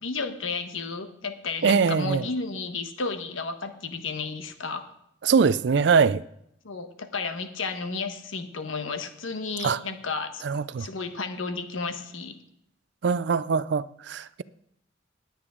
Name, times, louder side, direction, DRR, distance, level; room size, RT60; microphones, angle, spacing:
voice 1, 0.0-4.9 6.6-10.4 10.8-12.4, left 4 dB, 85° left, 1.2 m, -32 dB
voice 2, 1.6-2.2 5.2-6.2 9.6-9.8 10.4-10.9 13.0-14.4, right 5 dB, 60° right, 0.4 m, -22 dB
19.5 x 8.8 x 3.7 m
head